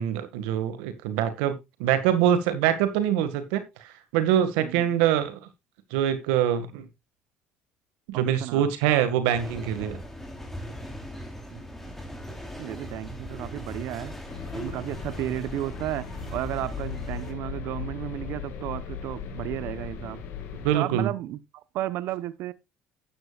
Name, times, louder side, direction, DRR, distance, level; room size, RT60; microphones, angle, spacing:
voice 1, 0.0-3.6 4.1-5.4 5.9-6.9 8.1-10.0 20.6-21.1, right 10 dB, 85° right, 1.9 m, -24 dB
voice 2, 8.1-8.7 11.5-12.0 12.6-14.1 14.5-16.1 16.3-20.2 20.7-22.5, right 14 dB, 70° right, 1.0 m, -33 dB
sound 1, 9.3-17.3, equal, 5° left, 3.5 m, -39 dB
sound 2, 14.3-20.7, left 7 dB, 70° left, 3.0 m, -38 dB
12.0 x 9.8 x 2.4 m
supercardioid pair, 85°, 4 cm